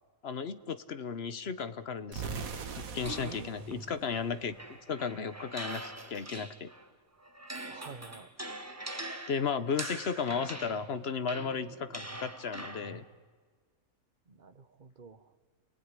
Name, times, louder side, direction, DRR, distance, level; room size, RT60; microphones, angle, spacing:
voice 1, 0.2-2.3 2.7-4.6 4.9-6.7 9.3-13.0, left 6 dB, 50° left, 13 dB, 1.1 m, -34 dB
sound 1, 2.1-5.0, right 5 dB, 75° right, 1.8 m, -41 dB
sound 2, 3.0-6.9 7.2-13.0, right 1 dB, 10° right, 1.3 m, -43 dB
voice 2, 3.2-3.7 7.7-8.3 12.1-12.2 14.3-15.3, right 5 dB, 40° right, 12 dB, 1.1 m, -49 dB
29.0 x 19.5 x 9.7 m, 1.5 s
omnidirectional pair, 1.5 m